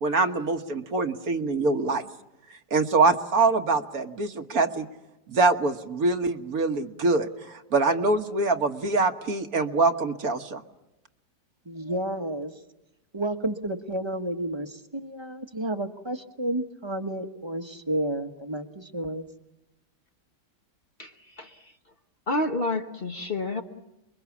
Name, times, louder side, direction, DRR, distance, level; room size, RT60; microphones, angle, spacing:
voice 1, 0.0-2.0 2.7-4.9 5.3-10.6, right 3 dB, 60° right, 6 dB, 1.7 m, -24 dB
voice 2, 11.6-12.5 13.1-19.3, right 1 dB, 20° right, 8 dB, 1.2 m, -31 dB
voice 3, 22.3-23.6, left 2 dB, 35° left, 5 dB, 1.3 m, -28 dB
30.0 x 22.5 x 7.3 m, 0.93 s
omnidirectional pair, 1.8 m